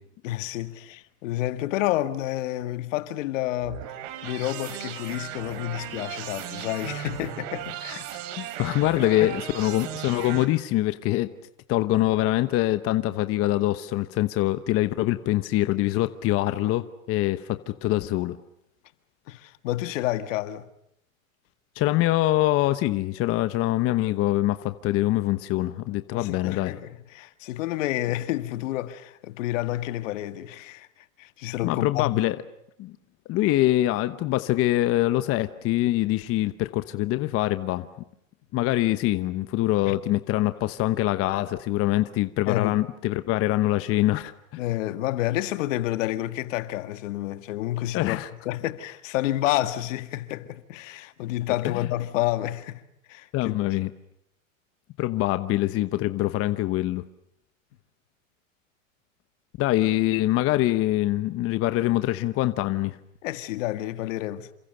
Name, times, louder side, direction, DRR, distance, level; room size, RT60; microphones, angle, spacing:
voice 1, 0.2-3.9 4.2-8.0 8.9-9.4 19.3-20.7 26.1-30.9 31.2-32.2 39.9-40.0 42.5-42.8 44.6-48.2 48.5-52.8 53.1-53.6 63.2-64.5, left 15 dB, 65° left, 2.0 m, -29 dB
sound 1, 3.6-10.4, right 11 dB, 55° right, 3.3 m, -36 dB
voice 2, 8.4-11.3 11.7-18.4 21.7-26.8 31.6-32.4 32.8-32.9 33.3-37.9 38.5-44.6 47.9-48.3 53.3-53.9 55.0-57.0 59.6-63.0, left 16 dB, 35° left, 1.0 m, -24 dB
28.5 x 27.0 x 6.8 m
supercardioid pair, 135°, 41 cm